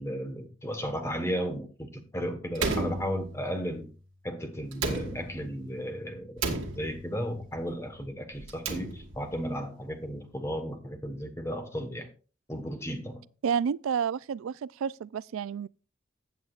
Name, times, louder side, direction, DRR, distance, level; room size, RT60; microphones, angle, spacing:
voice 1, 0.0-3.9 4.2-12.1 12.5-13.2, equal, 15° left, 1.2 m, -34 dB
Slam, 2.5-3.7 4.7-5.6 6.4-7.3 8.4-9.4, right 3 dB, 70° right, 1.6 m, -33 dB
voice 2, 13.4-15.7, right 7 dB, 90° right, 0.3 m, -30 dB
14.5 x 8.2 x 2.4 m
head